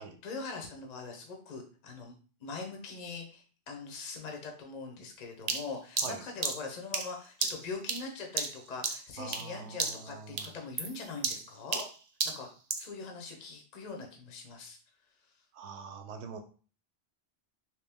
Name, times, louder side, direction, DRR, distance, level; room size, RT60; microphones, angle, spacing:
voice 1, 0.0-2.1 2.4-11.8 12.2-14.8, left 4 dB, 45° left, 1 dB, 0.7 m, -42 dB
sound 1, 5.5-9.5 9.8-10.1 10.4-12.9, right 5 dB, 50° right, 0.5 m, -34 dB
voice 2, 9.2-10.5 15.5-16.4, right 5 dB, 80° right, 6 dB, 0.9 m, -44 dB
3.0 x 3.0 x 3.4 m, 0.39 s
omnidirectional pair, 1.2 m